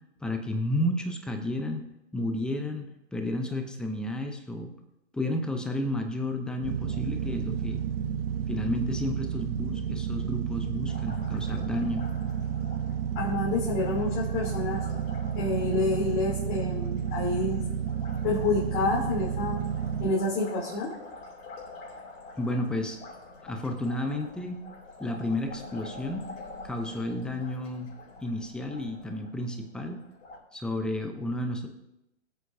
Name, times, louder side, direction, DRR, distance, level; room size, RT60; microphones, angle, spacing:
voice 1, 0.2-1.8 2.1-4.7 5.1-7.8 8.5-12.0 22.4-23.0 23.4-24.6 25.0-26.3 26.6-27.9 28.2-30.0 30.5-31.7, left 1 dB, ahead, 5 dB, 0.7 m, -32 dB
sound 1, 6.6-20.1, right 8 dB, 50° right, 0.9 m, -31 dB
Liquid, 10.9-30.4, left 3 dB, 60° left, 4.7 m, -47 dB
voice 2, 13.1-14.8 15.3-17.6 18.2-19.6 20.0-20.9, left 2 dB, 35° left, -5 dB, 3.1 m, -28 dB
21.5 x 8.3 x 2.7 m, 0.88 s
hypercardioid pair, 135°, 37 cm